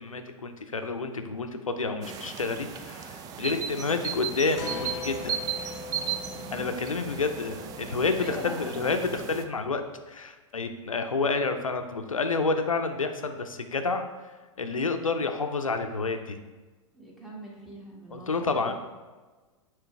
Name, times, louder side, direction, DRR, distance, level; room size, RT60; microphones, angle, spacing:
voice 1, 0.0-5.4 6.5-9.8 10.1-14.0 14.6-16.4 18.1-18.7, left 4 dB, 80° left, 7 dB, 0.6 m, -29 dB
sound 1, 2.0-9.4, right 8 dB, 20° right, 0.4 m, -36 dB
voice 2, 3.3-4.0 6.3-6.8 7.1-7.5 7.8-8.9 16.9-18.7, equal, ahead, -4 dB, 1.6 m, -43 dB
sound 2, 4.6-10.0, left 4 dB, 45° left, 0.9 m, -42 dB
9.2 x 3.2 x 3.5 m, 1.3 s
figure-of-eight pair, 100°, 17 cm